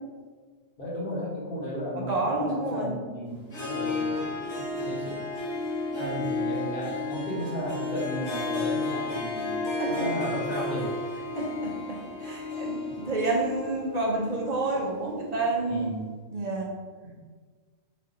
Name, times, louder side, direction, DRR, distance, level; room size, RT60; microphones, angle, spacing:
voice 1, 0.8-4.3 4.7-5.2 6.0-10.9 15.7-16.1 17.0-17.2, equal, 50° left, -6 dB, 1.2 m, -34 dB
voice 2, 2.0-2.9 3.7-4.3 4.5-5.2 9.8-10.3 11.4-15.9 16.3-16.7, right 2 dB, 45° right, -2 dB, 0.6 m, -30 dB
Harp, 3.4-15.3, left 3 dB, 80° left, 1.2 m, -33 dB
4.0 x 3.2 x 2.6 m, 1.5 s
omnidirectional pair, 1.2 m